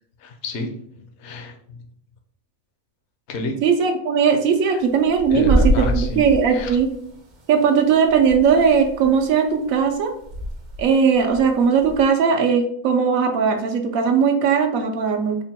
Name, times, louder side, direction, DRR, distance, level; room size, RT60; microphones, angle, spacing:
voice 1, 0.2-0.7 1.2-1.8 3.3-3.6 5.3-6.2 6.5-6.8, left 2 dB, 65° left, 4 dB, 0.9 m, -29 dB
voice 2, 3.6-6.9 7.5-10.1 10.8-15.4, right 6 dB, 85° right, 4 dB, 1.0 m, -18 dB
sound 1, 4.5-4.6 4.9-7.5 7.9-9.3 9.7-9.9 10.2-12.0, right 1 dB, 50° right, 0.6 m, -25 dB
3.7 x 2.2 x 4.1 m, 0.65 s
omnidirectional pair, 1.4 m